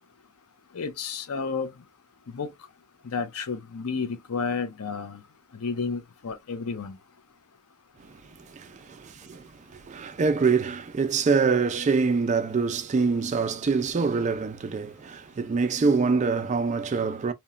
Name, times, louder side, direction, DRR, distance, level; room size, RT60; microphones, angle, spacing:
voice 1, 0.7-1.7 2.3-2.5 3.1-5.2 5.6-7.0, left 5 dB, 75° left, 0.6 m, -31 dB
voice 2, 8.5-17.3, right 4 dB, 30° right, 0.3 m, -25 dB
2.9 x 2.1 x 2.3 m
head